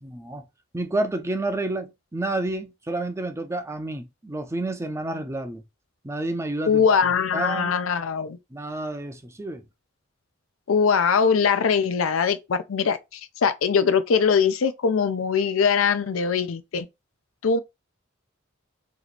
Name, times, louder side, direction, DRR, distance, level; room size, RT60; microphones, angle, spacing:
voice 1, 0.0-0.4 0.7-5.6 6.0-6.9 7.3-7.8 8.5-9.6, right 2 dB, 15° right, 0.5 m, -29 dB
voice 2, 6.7-8.4 10.7-16.9 17.4-17.6, left 6 dB, 80° left, 0.5 m, -22 dB
3.0 x 2.9 x 4.0 m
head